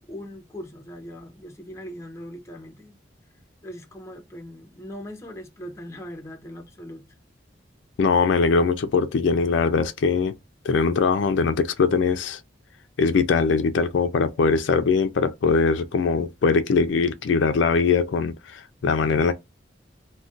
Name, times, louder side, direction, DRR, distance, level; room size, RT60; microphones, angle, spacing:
voice 1, 0.0-2.9 3.6-7.0, equal, 15° left, 0.6 m, -40 dB
voice 2, 8.0-10.3 10.6-12.4 13.0-19.3, left 5 dB, 75° left, 0.4 m, -21 dB
2.4 x 2.1 x 3.7 m
head